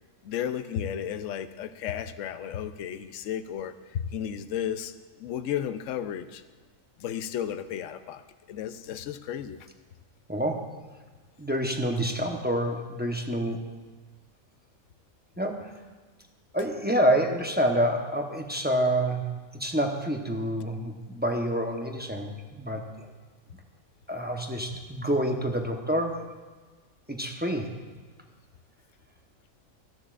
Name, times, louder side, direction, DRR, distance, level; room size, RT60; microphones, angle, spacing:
voice 1, 0.2-6.4 7.0-8.2 8.5-9.6, left 9 dB, 70° left, 11 dB, 0.9 m, -33 dB
voice 2, 11.4-13.6 15.4-15.7 16.5-19.2 19.5-22.8 24.1-26.2 27.1-27.7, equal, 10° right, 2 dB, 0.7 m, -27 dB
17.0 x 13.0 x 2.5 m, 1.4 s
omnidirectional pair, 1.4 m